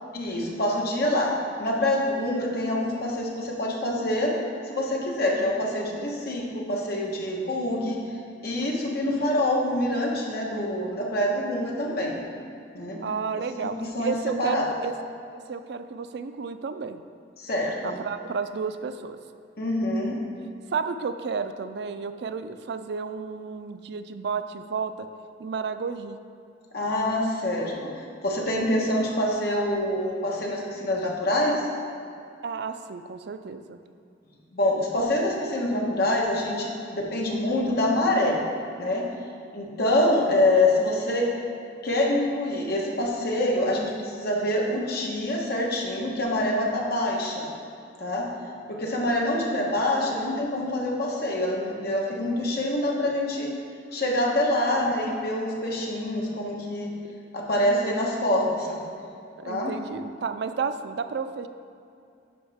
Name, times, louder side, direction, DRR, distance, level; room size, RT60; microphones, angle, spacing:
voice 1, 0.1-1.3 1.6-4.3 4.7-8.0 8.4-12.2 12.7-13.0 13.9-14.6 17.4-18.0 19.6-20.2 26.7-27.9 28.2-31.7 34.5-38.4 38.8-39.1 39.5-41.3 41.8-47.5 48.0-48.3 48.7-53.5 53.9-56.9 57.3-58.8 59.4-59.7, left 1 dB, 60° left, -2 dB, 1.4 m, -25 dB
voice 2, 13.0-15.0 15.3-17.0 17.8-19.2 20.7-24.9 25.4-26.2 32.4-33.8 54.7-54.9 59.4-61.5, right 5 dB, 65° right, 10 dB, 0.4 m, -32 dB
10.0 x 6.2 x 3.5 m, 2.5 s
head